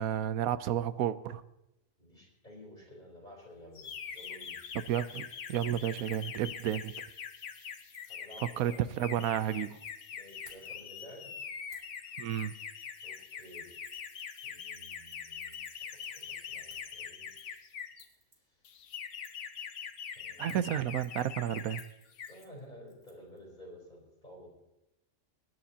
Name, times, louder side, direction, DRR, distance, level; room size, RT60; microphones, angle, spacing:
voice 1, 0.0-1.4 4.9-6.9 8.6-9.8 12.2-12.5 20.4-21.8, right 10 dB, 85° right, 13 dB, 1.1 m, -32 dB
voice 2, 2.0-4.6 8.1-9.4 10.1-11.3 13.0-13.7 14.4-15.6 16.2-17.6 18.5-18.6 20.1-20.6 22.3-24.5, equal, 30° left, -2 dB, 4.0 m, -53 dB
sound 1, 3.8-18.0 18.6-21.8 22.1-22.4, left 7 dB, 60° left, 1.1 m, -43 dB
Keys jangling, 4.1-4.5 4.8-5.1 5.4-6.9 7.8-8.1 9.0-9.9 10.3-11.0 11.7-12.0 12.3-12.5 12.8-18.4 19.2-19.5 20.3-23.4 23.7-23.8, right 1 dB, 30° right, 2.8 m, -62 dB
25.5 x 11.0 x 2.8 m, 0.93 s
omnidirectional pair, 1.5 m